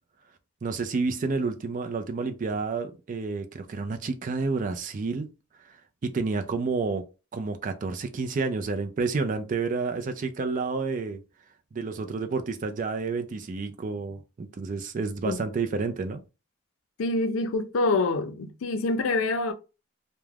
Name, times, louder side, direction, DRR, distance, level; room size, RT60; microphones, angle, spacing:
voice 1, 0.6-5.3 5.6-5.8 6.0-7.1 7.3-11.2 11.7-16.2, right 4 dB, 40° right, 0.3 m, -30 dB
voice 2, 17.0-19.5, left 3 dB, 80° left, 0.4 m, -26 dB
2.3 x 2.1 x 3.2 m
head